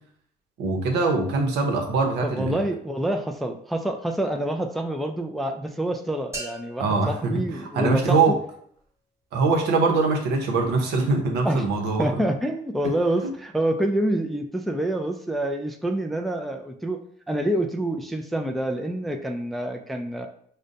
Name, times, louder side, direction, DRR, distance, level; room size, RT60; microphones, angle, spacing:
voice 1, 0.6-2.6 6.8-8.4 9.3-12.1, right 3 dB, 80° right, 2 dB, 0.8 m, -23 dB
voice 2, 2.2-8.2 11.4-11.6 12.0-20.3, right 1 dB, ahead, 4 dB, 0.3 m, -27 dB
sound 1, 6.3-8.3, right 2 dB, 15° right, 1.1 m, -40 dB
5.0 x 2.1 x 2.6 m, 0.64 s
cardioid pair, 110°, 17 cm